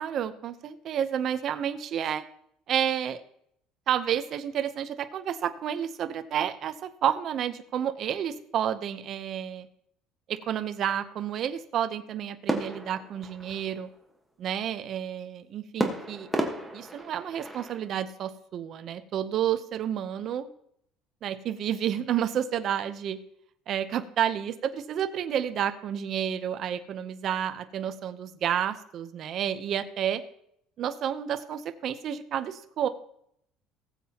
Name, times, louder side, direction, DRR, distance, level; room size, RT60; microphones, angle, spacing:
voice 1, 0.0-2.2 2.7-3.2 3.9-9.7 10.3-13.9 14.4-16.3 16.7-20.5 21.2-23.2 23.7-30.2 30.8-32.9, right 9 dB, 40° right, 10 dB, 0.7 m, -30 dB
sound 1, 12.5-14.0 15.8-17.9, right 1 dB, ahead, 1.4 m, -33 dB
19.0 x 7.6 x 2.9 m, 0.71 s
cardioid pair, 155°, 0 cm